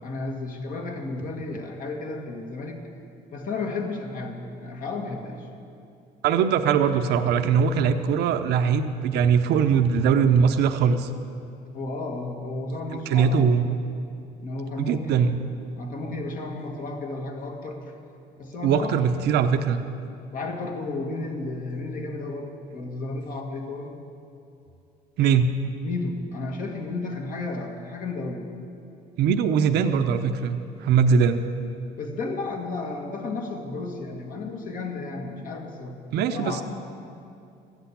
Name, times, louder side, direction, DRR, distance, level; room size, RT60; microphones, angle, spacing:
voice 1, 0.0-2.8 3.3-5.5 11.7-13.8 14.4-15.3 15.8-17.8 18.4-19.0 20.3-23.9 25.8-28.5 31.1-31.2 32.0-36.6, left 3 dB, 55° left, 2 dB, 2.0 m, -33 dB
voice 2, 6.2-11.1 13.1-13.6 14.8-15.4 18.6-19.8 25.2-25.5 29.2-30.6 30.8-31.4 36.1-36.6, right 6 dB, 75° right, 7 dB, 0.7 m, -21 dB
14.0 x 8.2 x 8.5 m, 2.6 s
cardioid pair, 110°, 17 cm